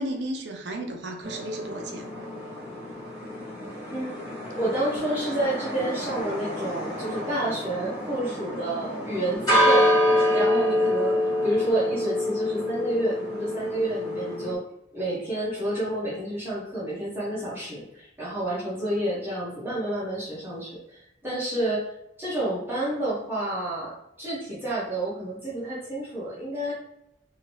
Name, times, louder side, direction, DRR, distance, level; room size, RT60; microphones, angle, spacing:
voice 1, 0.0-2.0, right 1 dB, 85° right, 3 dB, 0.6 m, -33 dB
sound 1, 1.2-14.5, left 1 dB, 20° left, 1.3 m, -27 dB
voice 2, 4.6-9.9 10.3-14.6 14.9-21.9 22.2-26.7, right 1 dB, 10° right, -9 dB, 0.9 m, -29 dB
2.8 x 2.8 x 3.0 m, 0.80 s
head